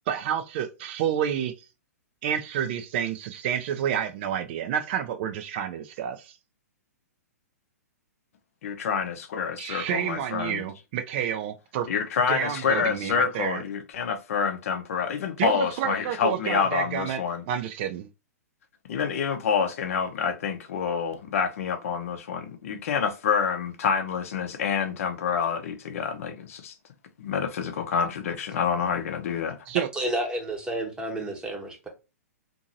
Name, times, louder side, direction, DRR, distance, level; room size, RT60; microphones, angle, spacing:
voice 1, 0.1-1.5 2.2-6.3 9.6-11.9 12.3-13.6 15.4-17.2 17.5-18.1 29.7-29.9, right 9 dB, 45° right, 0.4 m, -29 dB
voice 2, 8.6-10.6 11.9-17.4 18.9-26.7 27.2-29.6, left 6 dB, 60° left, 0.6 m, -27 dB
voice 3, 29.9-31.9, right 1 dB, 10° right, 0.8 m, -30 dB
2.7 x 2.6 x 2.6 m
hypercardioid pair, 120°, 9 cm